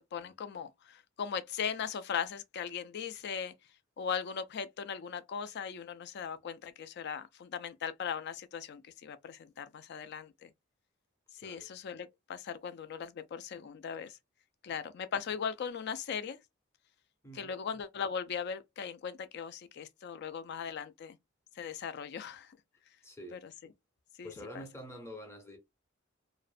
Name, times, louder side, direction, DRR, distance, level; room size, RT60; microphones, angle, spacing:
voice 1, 0.0-3.5 4.0-10.5 11.3-14.2 14.6-16.4 17.3-21.2 21.6-22.6 23.3-23.4 24.2-24.6, left 7 dB, 55° left, 0.3 m, -39 dB
voice 2, 23.0-23.4 24.2-25.6, equal, 15° left, 0.6 m, -47 dB
2.4 x 2.1 x 2.4 m
head